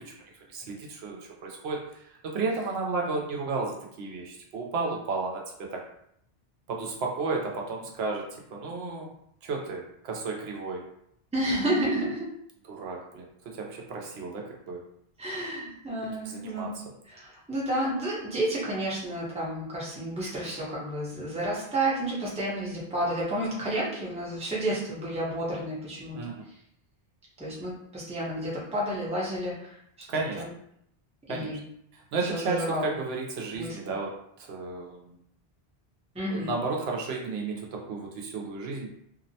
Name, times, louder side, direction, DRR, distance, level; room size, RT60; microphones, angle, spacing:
voice 1, 0.5-5.9 6.7-9.1 9.4-10.9 12.7-14.8 16.2-16.7 26.2-26.4 30.1-30.4 31.3-31.6 31.9-35.2 36.3-38.9, right 3 dB, 85° right, 0 dB, 0.8 m, -33 dB
voice 2, 11.3-12.3 15.2-16.7 17.1-26.2 27.4-29.7 30.3-30.5 31.3-31.6 32.3-32.9 33.5-33.8 36.1-36.5, right 1 dB, 5° right, -7 dB, 0.6 m, -31 dB
2.6 x 2.1 x 2.6 m, 0.73 s
omnidirectional pair, 1.0 m